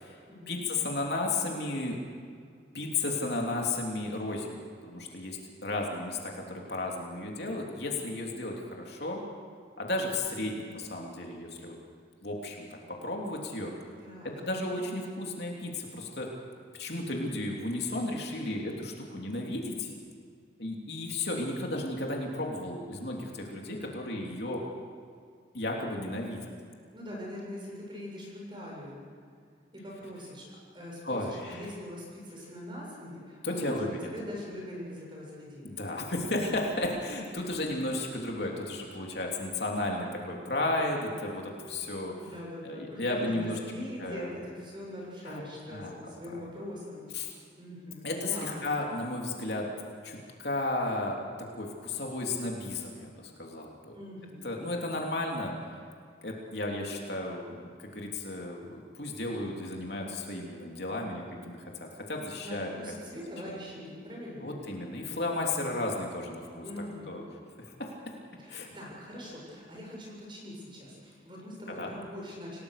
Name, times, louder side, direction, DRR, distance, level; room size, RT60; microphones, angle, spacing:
voice 1, 0.5-2.0 2.7-9.2 9.8-11.7 12.2-13.7 14.4-16.3 16.7-19.9 20.6-24.6 25.5-26.5 31.0-31.7 33.4-34.1 35.6-42.1 42.6-43.6 44.0-44.4 45.2-45.4 45.7-46.4 47.1-47.3 48.0-49.7 50.0-51.2 51.6-53.9 54.4-55.5 56.2-62.7 63.1-63.2 64.4-66.6 67.1-67.2 67.6-67.9 68.5-68.7 71.8-71.9, left 2 dB, 60° left, -1 dB, 3.2 m, -34 dB
voice 2, 14.0-14.5 26.9-29.0 29.7-30.4 30.7-35.8 42.2-47.1 47.6-48.6 53.9-54.5 62.4-64.5 66.6-67.2 68.4-72.6, left 1 dB, 25° right, -2 dB, 7.3 m, -42 dB
28.0 x 18.5 x 6.7 m, 2.2 s
head